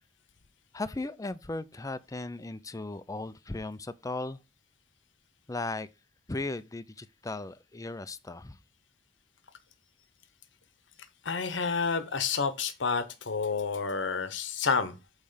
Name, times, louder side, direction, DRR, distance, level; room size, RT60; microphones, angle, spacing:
voice 1, 0.7-4.4 5.5-5.9 6.3-8.6, left 2 dB, 20° left, 0.5 m, -36 dB
voice 2, 11.2-14.9, left 5 dB, 75° left, 1.0 m, -29 dB
8.5 x 3.2 x 5.6 m
head